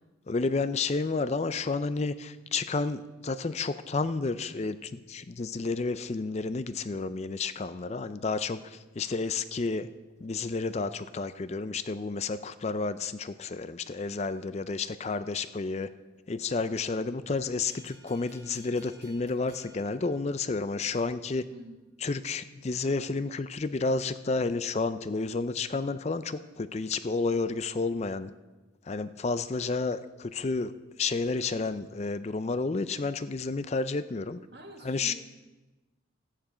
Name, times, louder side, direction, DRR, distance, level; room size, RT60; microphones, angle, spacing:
voice 1, 0.3-9.9 10.2-15.9 16.3-21.5 22.0-28.3 28.9-30.7 31.0-34.4 34.8-35.1, left 3 dB, 35° left, 13 dB, 0.4 m, -31 dB
sound 1, 17.6-20.8, right 2 dB, 75° right, 2.9 m, -58 dB
voice 2, 34.5-35.1, right 2 dB, 55° right, 3 dB, 1.7 m, -46 dB
14.5 x 9.9 x 5.0 m, 1.1 s
head